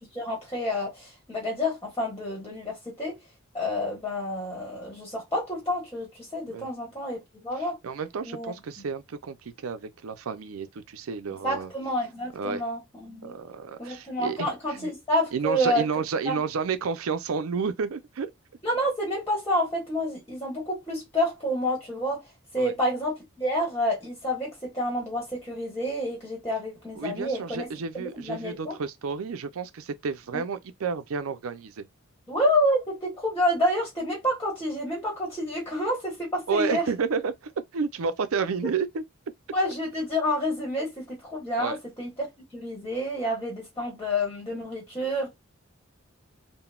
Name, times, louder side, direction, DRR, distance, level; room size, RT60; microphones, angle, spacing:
voice 1, 0.0-3.2 3.5-7.8 8.2-8.5 11.4-13.3 13.8-15.8 16.2-16.4 18.6-22.2 22.5-27.7 28.2-28.7 30.3-30.4 32.3-36.9 39.5-45.3, equal, 10° left, 1.3 m, -29 dB
voice 2, 7.8-11.7 12.3-12.6 13.2-14.9 15.3-18.3 22.6-22.7 27.0-31.9 36.5-39.0 41.6-41.8, right 5 dB, 80° right, 0.5 m, -31 dB
3.8 x 2.1 x 2.3 m
head